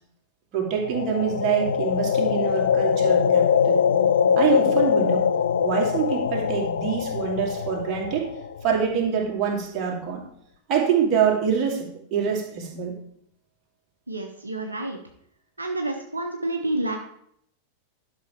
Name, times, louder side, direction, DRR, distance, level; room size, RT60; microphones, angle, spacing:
voice 1, 0.5-3.8 4.4-5.3 5.6-8.3 8.6-10.2 10.7-12.9, right 7 dB, 35° right, -1 dB, 2.4 m, -25 dB
sound 1, 0.8-8.8, left 7 dB, 65° left, 0.4 m, -22 dB
voice 2, 14.1-15.0 15.6-17.0, right 2 dB, 80° right, 3 dB, 0.9 m, -29 dB
11.5 x 6.1 x 4.5 m, 0.69 s
figure-of-eight pair, 90°, 0 cm